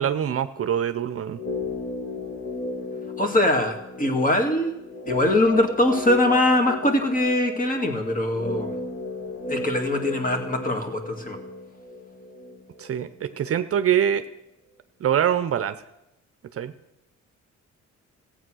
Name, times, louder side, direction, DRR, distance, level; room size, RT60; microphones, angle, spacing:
voice 1, 0.0-1.4 12.8-14.2 15.0-15.8 16.5-16.7, right 9 dB, 50° right, 12 dB, 0.7 m, -24 dB
sound 1, 1.3-13.4 13.7-13.8, left 3 dB, 45° left, 1.8 m, -35 dB
voice 2, 3.2-4.7 5.1-8.8 9.5-11.4, left 1 dB, 25° left, 5 dB, 2.2 m, -22 dB
15.0 x 8.4 x 6.3 m, 0.91 s
cardioid pair, 90°, 30 cm